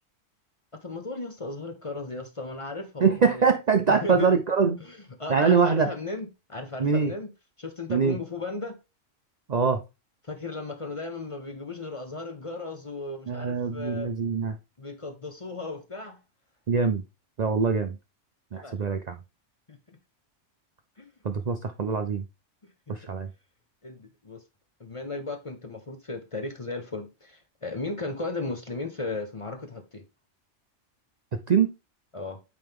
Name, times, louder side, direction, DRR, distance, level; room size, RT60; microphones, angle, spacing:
voice 1, 0.8-3.4 3.9-4.3 4.8-7.3 7.6-8.8 10.3-14.1 14.8-16.2 18.5-18.8 19.7-19.8 21.0-21.1 22.6-23.1 23.8-24.4 24.8-30.0 32.1-32.4, left 3 dB, 30° left, 0.7 m, -36 dB
voice 2, 3.0-4.8 5.3-5.9 6.8-7.1 7.9-8.2 9.5-9.8 13.3-14.6 16.7-17.0 17.4-18.0 18.5-19.1 21.2-22.2 22.9-23.3 31.5-31.7, right 5 dB, 50° right, 0.5 m, -23 dB
8.9 x 3.4 x 3.5 m
omnidirectional pair, 1.3 m